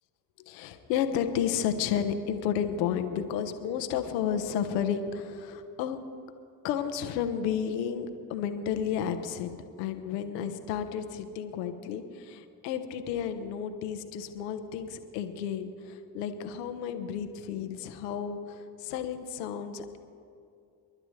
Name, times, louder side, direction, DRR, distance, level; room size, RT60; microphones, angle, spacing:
voice 1, 0.4-6.0 6.6-20.0, left 8 dB, 80° left, 8 dB, 1.0 m, -32 dB
28.0 x 11.5 x 3.2 m, 2.4 s
hypercardioid pair, 45°, 48 cm